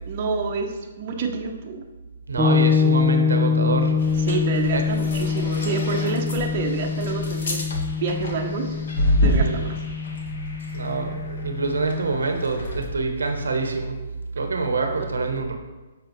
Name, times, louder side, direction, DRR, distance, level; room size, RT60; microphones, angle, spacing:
voice 1, 0.1-1.8 4.3-7.7 8.0-8.8 9.2-9.7 15.0-15.1, right 5 dB, 40° right, 1 dB, 0.8 m, -28 dB
voice 2, 2.3-4.0 4.7-4.8 9.4-9.6 10.7-13.9 14.3-15.5, right 3 dB, 85° right, 4 dB, 0.8 m, -26 dB
sound 1, 2.4-12.1, left 6 dB, 15° right, 0.8 m, -24 dB
sound 2, 4.0-12.8, left 1 dB, 65° left, 1.3 m, -29 dB
7.5 x 4.8 x 3.1 m, 1.2 s
hypercardioid pair, 140°, 0 cm